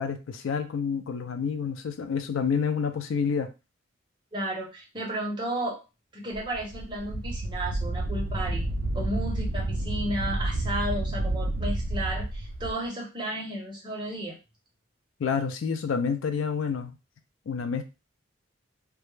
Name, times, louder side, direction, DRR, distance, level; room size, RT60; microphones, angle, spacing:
voice 1, 0.0-3.5 15.2-17.0 17.5-17.8, left 6 dB, 80° left, 8 dB, 0.4 m, -28 dB
voice 2, 4.3-5.8 6.1-8.7 8.9-14.4, right 1 dB, 25° right, -3 dB, 0.7 m, -33 dB
Wind, 6.3-12.7, right 1 dB, 50° right, 0.3 m, -30 dB
2.3 x 2.0 x 3.1 m, 0.28 s
head